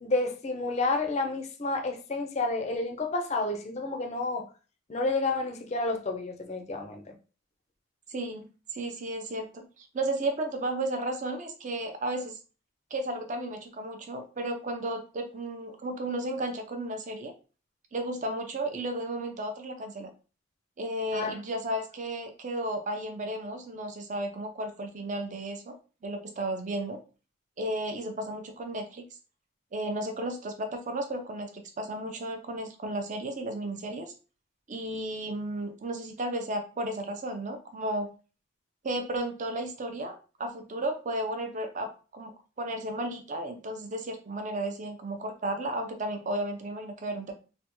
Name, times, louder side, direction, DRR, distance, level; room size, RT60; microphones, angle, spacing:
voice 1, 0.0-4.5 4.9-7.1 21.1-21.4, left 3 dB, 30° left, 0.4 m, -30 dB
voice 2, 8.1-8.5 8.7-12.4 12.9-17.3 17.9-20.1 20.8-25.8 26.0-27.0 27.6-29.1 29.7-34.1 34.7-38.1 38.8-47.3, right 1 dB, 35° right, 0.5 m, -33 dB
3.3 x 2.2 x 2.9 m
head